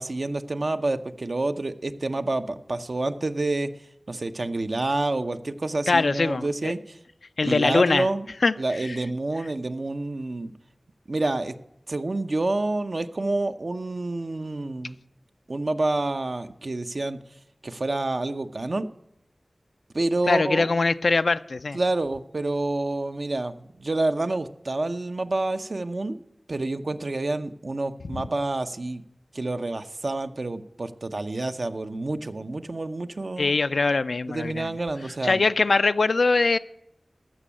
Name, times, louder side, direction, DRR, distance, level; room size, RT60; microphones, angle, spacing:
voice 1, 0.0-3.7 4.1-7.0 7.4-8.3 8.6-10.5 11.1-11.6 11.9-15.0 15.5-17.2 17.6-18.9 19.9-20.7 21.7-26.2 26.5-29.0 29.3-33.5 34.3-35.4, right 2 dB, 60° right, 8 dB, 0.7 m, -28 dB
voice 2, 5.9-6.7 7.4-8.1 8.4-9.0 20.3-21.8 33.4-34.7 35.2-36.6, left 3 dB, 85° left, 12 dB, 0.4 m, -22 dB
14.0 x 6.2 x 8.5 m, 0.80 s
wide cardioid pair, 45°, 0 cm